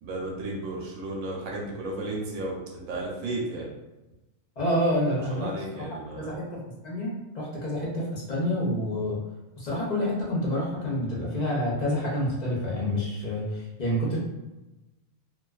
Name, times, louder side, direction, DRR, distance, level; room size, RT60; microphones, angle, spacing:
voice 1, 0.0-3.7 5.3-6.4, right 2 dB, 80° right, -2 dB, 1.0 m, -34 dB
voice 2, 4.6-5.5 6.1-9.2 9.6-14.2, left 1 dB, 50° left, -5 dB, 0.5 m, -28 dB
2.3 x 2.3 x 2.3 m, 1.0 s
omnidirectional pair, 1.4 m